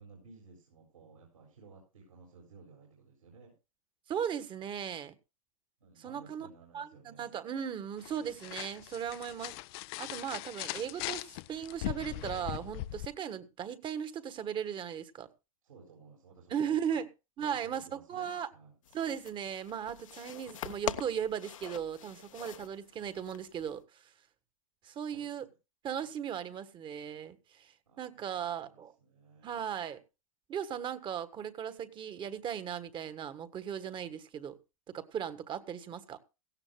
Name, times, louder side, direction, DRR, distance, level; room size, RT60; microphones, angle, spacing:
voice 1, 0.0-3.5 5.8-7.3 15.6-17.0 17.4-18.7 25.0-25.5 26.0-26.1 27.9-29.8, right 4 dB, 75° right, 7.3 m, -57 dB
voice 2, 4.1-5.1 6.0-6.5 6.7-9.6 10.0-15.3 16.5-17.1 17.4-18.5 18.9-24.0 24.8-25.5 25.8-27.7 28.0-28.9 29.4-30.0 30.5-34.6 34.9-36.2, right 8 dB, 25° right, 1.5 m, -37 dB
sound 1, 8.0-13.1, left 19 dB, 45° left, 0.5 m, -40 dB
sound 2, 18.8-23.8, left 11 dB, 70° left, 1.1 m, -43 dB
17.5 x 15.5 x 2.2 m
hypercardioid pair, 105°, 17 cm